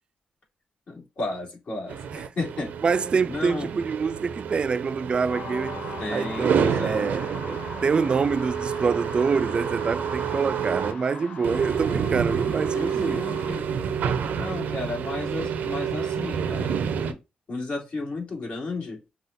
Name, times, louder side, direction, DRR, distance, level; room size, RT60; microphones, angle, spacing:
voice 1, 0.9-2.7 3.3-3.7 6.0-7.1 12.7-13.7 14.3-16.8 17.0-17.2 17.5-19.0, left 2 dB, 50° left, 2.6 m, -33 dB
sound 1, 1.9-10.9 11.4-17.1, right 7 dB, 75° right, 0.7 m, -29 dB
voice 2, 2.8-5.8 6.1-13.2, right 5 dB, 40° right, 0.3 m, -26 dB
sound 2, 5.3-13.6, left 4 dB, 70° left, 1.0 m, -41 dB
5.6 x 2.4 x 3.9 m
cardioid pair, 90°, 3 cm